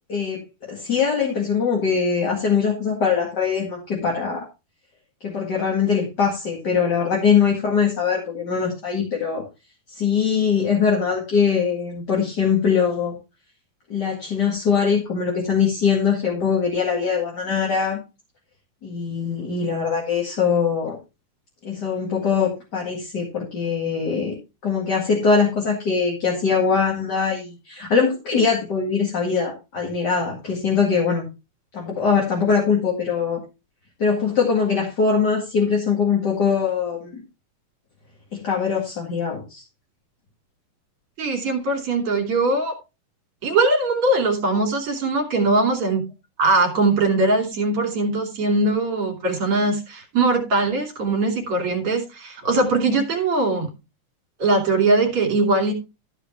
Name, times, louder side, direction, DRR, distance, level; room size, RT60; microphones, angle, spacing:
voice 1, 0.1-4.5 5.2-9.4 9.9-13.2 13.9-18.0 18.8-21.0 21.6-24.3 24.6-31.2 31.7-33.4 34.0-37.2 38.3-39.6, left 6 dB, 35° left, -1 dB, 2.5 m, -22 dB
voice 2, 41.2-42.8 43.4-46.0 46.4-53.7 54.4-55.7, right 2 dB, 45° right, 3 dB, 3.7 m, -21 dB
14.0 x 5.0 x 4.5 m, 0.28 s
omnidirectional pair, 3.6 m